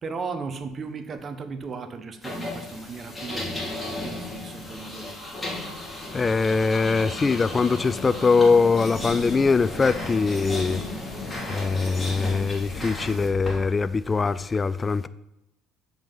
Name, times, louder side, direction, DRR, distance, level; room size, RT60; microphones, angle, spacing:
voice 1, 0.0-5.2, right 4 dB, 40° right, 1.1 m, -36 dB
sound 1, 2.2-13.6, left 2 dB, 10° left, 3.6 m, -34 dB
voice 2, 6.1-10.8 11.5-15.1, left 4 dB, 25° left, 0.3 m, -22 dB
7.7 x 5.6 x 5.3 m
supercardioid pair, 90°, 0 cm